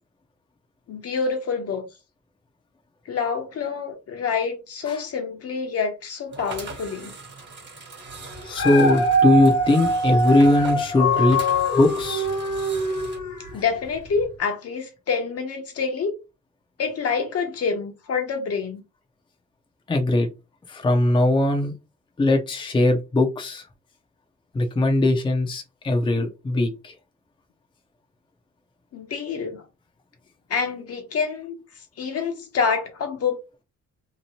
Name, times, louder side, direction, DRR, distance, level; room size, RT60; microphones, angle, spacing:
voice 1, 0.9-1.9 3.1-7.1 13.5-16.1 16.8-18.8 28.9-29.6 30.5-31.5 32.0-33.4, left 5 dB, 55° left, 0.8 m, -27 dB
sound 1, 6.3-13.2, right 3 dB, 35° right, 1.0 m, -40 dB
Dog, 8.3-13.7 14.2-14.3, equal, 90° left, 1.1 m, -23 dB
voice 2, 8.4-11.4 11.7-12.3 19.9-20.3 20.7-21.7 22.2-23.6 24.5-26.9, left 2 dB, 15° left, 0.6 m, -20 dB
2.9 x 2.2 x 2.7 m
cardioid pair, 90°, 30 cm